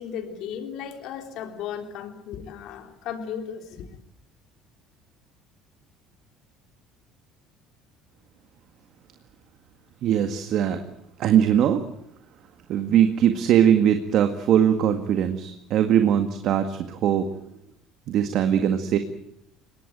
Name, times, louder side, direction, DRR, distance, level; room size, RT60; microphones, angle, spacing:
voice 1, 0.0-3.9, left 8 dB, 65° left, 6 dB, 3.7 m, -35 dB
voice 2, 10.0-10.8 11.2-11.8 12.7-17.3 18.1-19.0, right 9 dB, 60° right, 7 dB, 1.9 m, -21 dB
22.0 x 18.5 x 9.2 m, 0.76 s
supercardioid pair, 100°, 0 cm